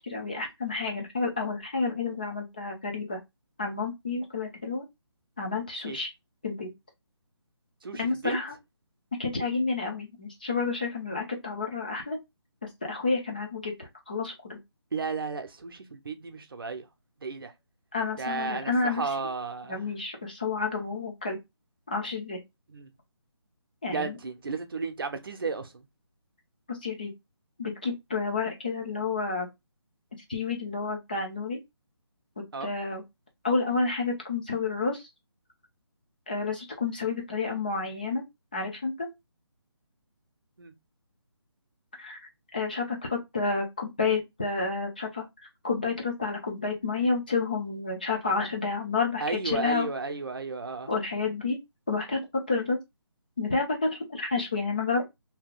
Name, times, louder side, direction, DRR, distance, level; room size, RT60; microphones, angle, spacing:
voice 1, 0.0-3.2 3.6-4.8 5.4-6.1 6.4-6.7 8.0-8.5 9.2-12.2 12.8-14.6 17.9-19.0 19.7-21.4 21.9-22.4 23.8-24.1 26.7-27.1 27.6-29.5 30.3-31.6 32.6-33.0 33.4-35.1 36.3-38.2 38.5-39.1 42.0-42.2 42.5-45.2 45.6-49.9 50.9-51.6 51.9-52.8 53.4-55.0, left 4 dB, 20° left, 0.5 m, -30 dB
voice 2, 7.8-8.4 14.9-16.9 17.2-17.5 18.2-19.8 22.7-22.9 23.9-25.9 32.5-32.7 40.6-40.7 49.2-50.9, right 4 dB, 55° right, 0.6 m, -33 dB
2.8 x 2.2 x 3.7 m
hypercardioid pair, 175°, 15 cm